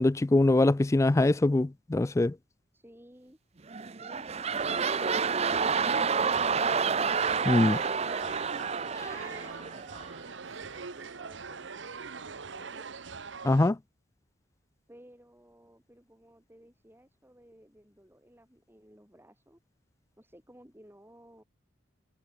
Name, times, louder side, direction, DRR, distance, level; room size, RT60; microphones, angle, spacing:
voice 1, 0.0-2.3 7.5-7.8 13.4-13.8, left 2 dB, 15° left, 0.3 m, -23 dB
voice 2, 2.7-3.4 9.2-12.9 14.9-19.6 20.2-21.4, equal, 10° right, 7.4 m, -56 dB
sound 1, 3.7-10.2 10.8-10.9, right 5 dB, 35° right, 0.7 m, -29 dB
sound 2, 4.6-13.7, right 5 dB, 70° right, 1.0 m, -42 dB
head